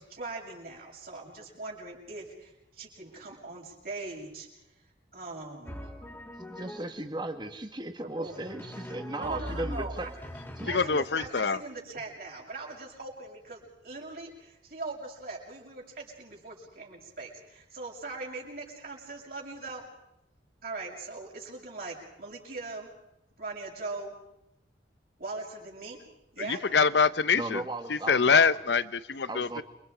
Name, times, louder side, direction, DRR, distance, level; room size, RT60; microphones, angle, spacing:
voice 1, 0.0-4.5 5.1-5.9 8.2-8.4 9.2-10.1 10.6-19.8 20.6-22.9 23.4-24.2 25.2-26.0 26.3-26.6, right 3 dB, 55° right, -2 dB, 6.8 m, -40 dB
Drum, 5.7-7.1 8.2-11.3, equal, 10° left, 2.7 m, -41 dB
voice 2, 6.5-10.1 10.6-10.7 27.3-28.6 29.3-29.6, right 2 dB, 25° right, 7 dB, 1.7 m, -36 dB
voice 3, 10.7-11.6 26.7-27.6 27.9-29.6, left 5 dB, 75° left, 16 dB, 0.8 m, -24 dB
29.0 x 24.5 x 5.0 m, 0.84 s
head